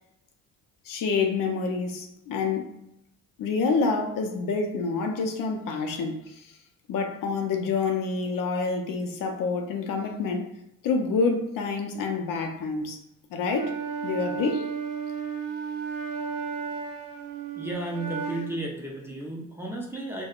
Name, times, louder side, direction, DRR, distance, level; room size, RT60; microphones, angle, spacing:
voice 1, 0.9-2.7 3.4-6.5 6.9-10.5 10.8-13.0 13.3-13.7 14.0-14.6, left 4 dB, 65° left, 4 dB, 0.6 m, -27 dB
Wind instrument woodwind instrument, 13.5-18.6, right 6 dB, 60° right, 0.6 m, -33 dB
voice 2, 17.5-20.3, right 1 dB, 5° right, -3 dB, 0.5 m, -33 dB
3.4 x 2.2 x 2.3 m, 0.83 s
cardioid pair, 110°, 36 cm